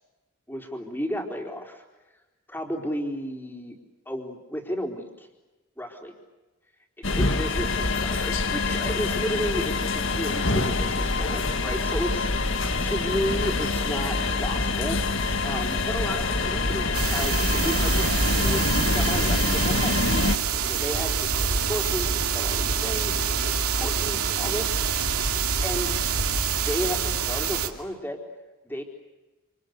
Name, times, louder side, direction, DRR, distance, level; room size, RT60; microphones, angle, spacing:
voice 1, 0.5-1.8 2.5-3.8 4.1-5.3 5.8-6.1 7.0-12.3 12.5-15.0 15.4-18.1 18.3-20.0 20.6-25.1 25.6-26.0 26.6-28.2 28.6-28.8, equal, 10° left, 2 dB, 4.3 m, -33 dB
sound 1, 7.0-20.4, left 3 dB, 60° left, 1.8 m, -25 dB
sound 2, 16.9-27.7, right 6 dB, 90° right, 2.6 m, -26 dB
29.0 x 29.0 x 6.8 m, 1.1 s
head